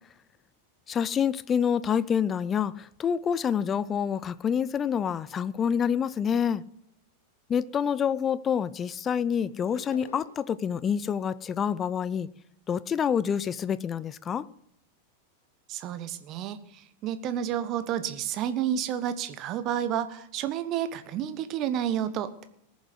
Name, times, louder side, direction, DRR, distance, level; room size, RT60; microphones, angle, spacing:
voice 1, 0.9-6.6 7.5-12.3 12.7-14.5, left 7 dB, 25° left, 0.6 m, -27 dB
sound 1, 9.7-10.6, left 4 dB, 70° left, 1.3 m, -46 dB
voice 2, 15.7-22.4, right 10 dB, 35° right, 1.4 m, -30 dB
20.0 x 7.3 x 8.0 m
figure-of-eight pair, 90°, 0 cm